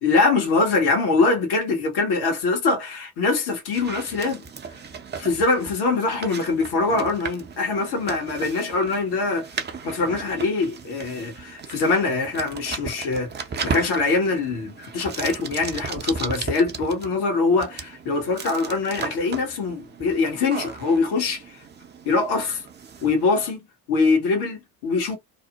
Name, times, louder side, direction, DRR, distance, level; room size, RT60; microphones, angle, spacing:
voice 1, 0.0-4.4 5.2-9.5 9.8-13.3 13.6-21.6 22.0-22.7 23.0-25.2, left 3 dB, 55° left, 1.1 m, -23 dB
sound 1, 3.7-23.5, right 5 dB, 25° right, 0.6 m, -36 dB
2.6 x 2.0 x 2.8 m
figure-of-eight pair, 50°, 46 cm